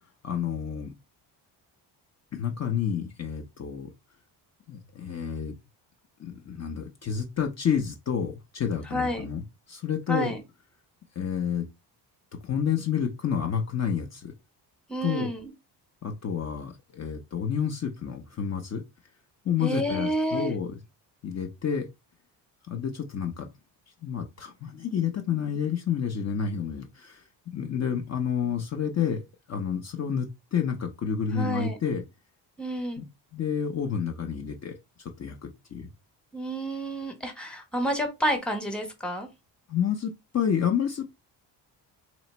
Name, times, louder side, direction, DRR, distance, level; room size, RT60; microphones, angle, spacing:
voice 1, 0.2-0.9 2.3-3.9 4.7-5.5 6.2-10.3 11.2-11.7 12.4-14.3 15.0-15.3 16.0-18.8 19.4-20.8 21.2-21.9 22.7-23.5 24.0-29.2 29.5-32.0 33.0-33.1 33.3-35.9 39.7-41.1, left 7 dB, 40° left, 0.8 m, -29 dB
voice 2, 8.9-9.3 10.1-10.4 14.9-15.5 19.6-20.5 31.3-31.8 32.6-33.0 36.3-39.3, equal, ahead, 1.1 m, -29 dB
3.1 x 3.0 x 4.3 m
cardioid pair, 125°, 42 cm